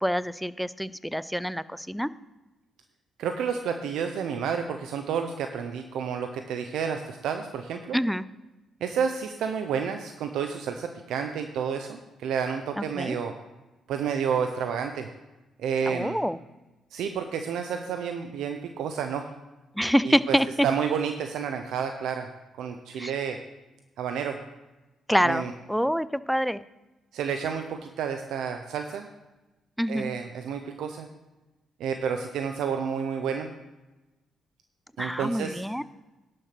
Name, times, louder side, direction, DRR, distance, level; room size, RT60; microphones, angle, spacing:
voice 1, 0.0-2.1 7.9-8.2 12.8-13.2 15.9-16.4 19.7-20.5 23.0-23.1 25.1-26.6 29.8-30.1 35.0-35.8, equal, ahead, 16 dB, 0.4 m, -26 dB
voice 2, 3.2-8.0 8.8-13.3 13.9-15.1 15.6-16.2 16.9-19.3 20.0-20.4 20.6-22.3 22.6-23.4 24.0-24.4 25.2-25.5 27.1-29.1 29.9-31.1 31.8-33.5 35.0-35.6, right 7 dB, 80° right, 6 dB, 0.8 m, -30 dB
11.0 x 6.4 x 6.0 m, 1.1 s
cardioid pair, 90°, 0 cm